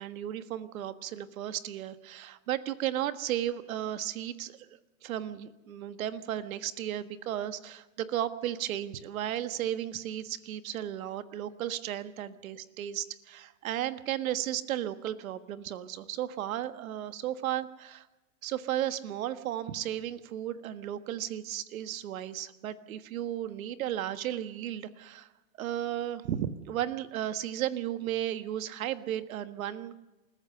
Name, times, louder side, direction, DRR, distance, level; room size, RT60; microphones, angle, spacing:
voice 1, 0.0-4.6 5.0-18.0 18.4-25.3 25.6-30.0, right 11 dB, 70° right, 12 dB, 1.5 m, -34 dB
28.5 x 14.0 x 6.7 m, 1.1 s
hypercardioid pair, 125°, 42 cm